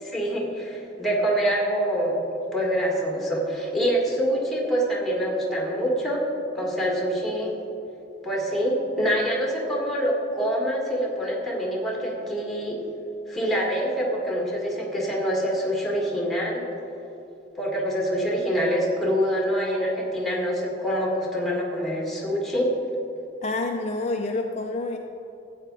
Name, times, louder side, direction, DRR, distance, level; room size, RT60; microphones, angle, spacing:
voice 1, 0.0-2.2 2.5-6.2 6.5-7.6 8.2-12.8 13.3-16.6 17.6-22.7, equal, ahead, -2 dB, 1.9 m, -25 dB
voice 2, 23.4-25.0, left 2 dB, 35° left, 3 dB, 0.5 m, -28 dB
13.0 x 8.5 x 4.0 m, 2.8 s
head